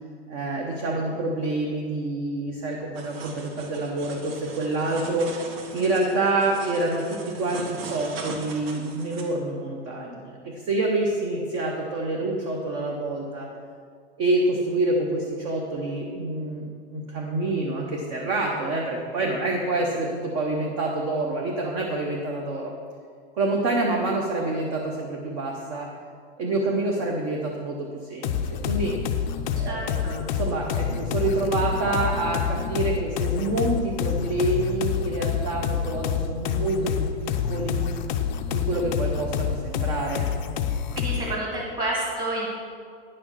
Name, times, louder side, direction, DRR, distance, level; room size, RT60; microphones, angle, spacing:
voice 1, 0.3-5.3 5.7-13.5 14.2-22.7 23.3-25.9 26.4-28.9 29.5-30.0 30.3-37.9 38.5-40.3, right 2 dB, 30° right, -1 dB, 0.8 m, -27 dB
sound 1, 2.9-9.2, right 3 dB, 60° right, 1.6 m, -39 dB
sound 2, 28.2-41.4, left 8 dB, 45° left, 0.5 m, -27 dB
voice 2, 29.6-30.1 40.9-42.5, right 1 dB, 15° right, -3 dB, 1.6 m, -29 dB
9.9 x 6.1 x 6.2 m, 2.1 s
supercardioid pair, 175°, 33 cm